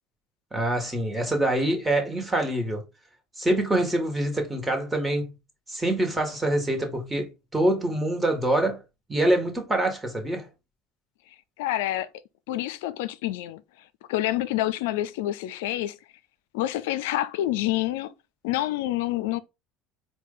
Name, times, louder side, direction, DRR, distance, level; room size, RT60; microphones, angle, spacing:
voice 1, 0.5-2.8 3.4-5.3 5.7-8.8 9.1-10.5, right 1 dB, 15° right, 1.8 m, -25 dB
voice 2, 11.6-12.1 12.5-13.6 14.1-16.0 16.5-18.1 18.4-19.4, left 14 dB, 80° left, 0.4 m, -27 dB
4.4 x 2.7 x 3.8 m
hypercardioid pair, 80°, 0 cm